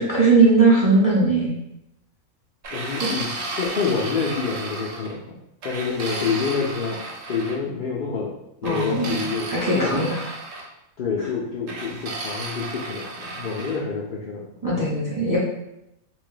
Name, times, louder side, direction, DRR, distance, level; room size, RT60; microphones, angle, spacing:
voice 1, 0.0-1.5 3.0-3.1 8.6-9.2 9.5-10.1 14.6-15.4, right 3 dB, 25° right, -5 dB, 0.5 m, -19 dB
sound 1, 2.6-5.1 5.6-7.6 8.6-10.7 11.7-13.8, right 3 dB, 75° right, 1.0 m, -33 dB
voice 2, 2.7-8.4 8.6-10.0 11.0-14.9, left 5 dB, 70° left, -3 dB, 0.5 m, -28 dB
2.8 x 2.5 x 3.8 m, 0.84 s
omnidirectional pair, 1.4 m